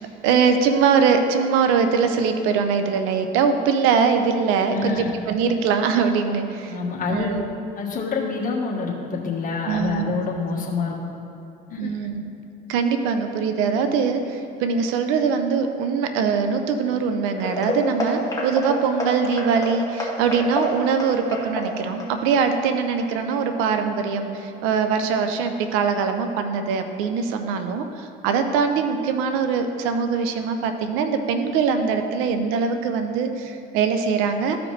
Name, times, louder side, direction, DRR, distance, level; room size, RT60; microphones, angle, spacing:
voice 1, 0.2-6.7 7.1-7.5 9.7-10.1 11.8-12.2 12.7-34.6, right 6 dB, 85° right, 7 dB, 0.7 m, -22 dB
voice 2, 4.7-5.1 6.7-7.4 7.7-11.0 11.7-11.9, left 4 dB, 40° left, -3 dB, 1.4 m, -27 dB
sound 1, 17.4-24.0 24.3-24.6 25.0-25.1 25.6-25.7, equal, 15° left, 1.7 m, -30 dB
13.5 x 5.0 x 3.3 m, 2.9 s
supercardioid pair, 85°, 21 cm